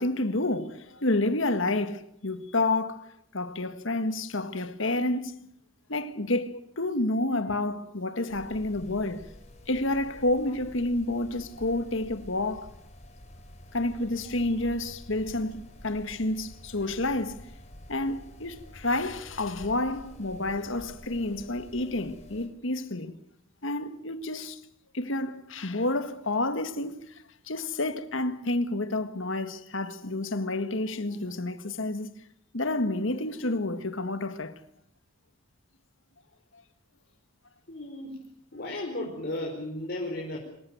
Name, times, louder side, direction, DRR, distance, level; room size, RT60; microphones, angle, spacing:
voice 1, 0.0-5.3 5.9-9.3 9.7-12.7 13.7-17.4 17.9-23.2 23.6-24.6 24.9-27.0 27.5-32.1 32.5-34.6, left 2 dB, 65° left, 1.7 m, -29 dB
sound 1, 8.3-22.5, left 1 dB, 35° left, 4.0 m, -49 dB
voice 2, 37.7-38.2 38.5-40.4, left 1 dB, 50° left, 4.7 m, -34 dB
26.0 x 15.0 x 9.4 m
head